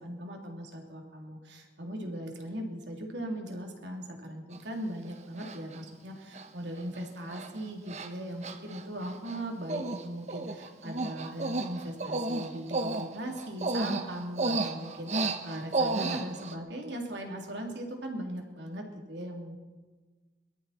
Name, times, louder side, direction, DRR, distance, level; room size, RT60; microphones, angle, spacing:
voice 1, 0.0-19.6, right 1 dB, 85° right, 1 dB, 3.1 m, -39 dB
Human voice, 4.5-4.6 5.4-5.8 6.3-6.5 6.8-7.0 7.3-7.5 7.9-8.1 8.4-9.4 9.7-10.0 10.3-16.5, right 3 dB, 40° right, 1.0 m, -32 dB
23.5 x 13.0 x 4.4 m, 1.3 s
head